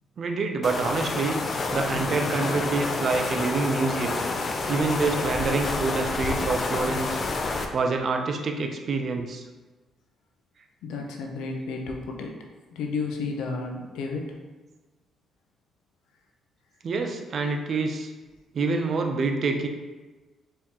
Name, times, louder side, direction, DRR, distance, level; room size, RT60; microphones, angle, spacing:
voice 1, 0.2-1.4 1.7-4.2 4.7-7.2 7.7-9.4 16.8-18.1 18.5-19.7, right 4 dB, 50° right, 5 dB, 0.5 m, -26 dB
sound 1, 0.6-7.6, left 3 dB, 45° left, 0.5 m, -28 dB
voice 2, 10.8-12.4 12.7-14.3, left 4 dB, 90° left, 2 dB, 0.6 m, -32 dB
4.2 x 3.7 x 2.9 m, 1.2 s
cardioid pair, 90°, 0 cm